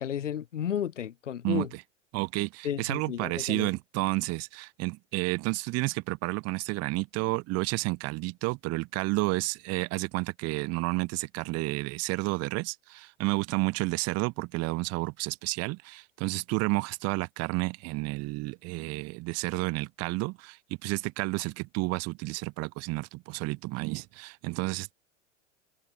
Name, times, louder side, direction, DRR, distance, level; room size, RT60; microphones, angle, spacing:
voice 1, 0.0-1.7 2.6-3.7, left 9 dB, 80° left, 1.3 m, -33 dB
voice 2, 2.1-24.9, right 24 dB, 40° right, 1.6 m, -31 dB
hypercardioid pair, 95°, 36 cm